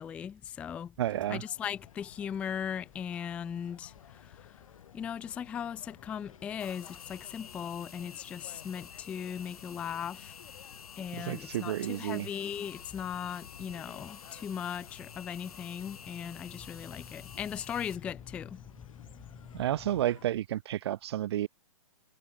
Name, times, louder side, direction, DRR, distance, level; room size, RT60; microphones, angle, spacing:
voice 1, 0.0-0.9 1.3-4.6 4.9-10.4 11.0-19.6, left 8 dB, 5° left, 0.4 m, -38 dB
voice 2, 1.0-1.4 11.1-12.3 19.5-21.5, right 12 dB, 45° right, 0.5 m, -31 dB
sound 1, 1.1-20.3, left 9 dB, 65° left, 1.5 m, -55 dB
sound 2, 6.6-18.0, left 7 dB, 90° left, 1.5 m, -50 dB
hypercardioid pair, 160°, 18 cm